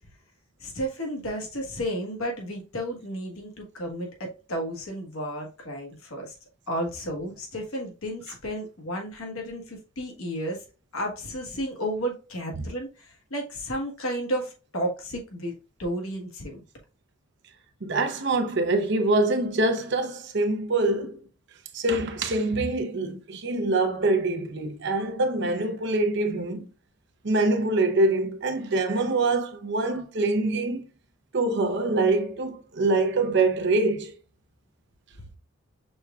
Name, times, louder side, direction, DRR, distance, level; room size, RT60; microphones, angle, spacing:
voice 1, 0.6-6.3 6.7-10.6 10.9-16.6, equal, 75° left, 1.4 m, -32 dB
voice 2, 17.8-21.2 21.7-26.6 27.2-30.9 31.3-34.1, right 2 dB, 55° right, 0.6 m, -24 dB
6.0 x 3.5 x 2.3 m
head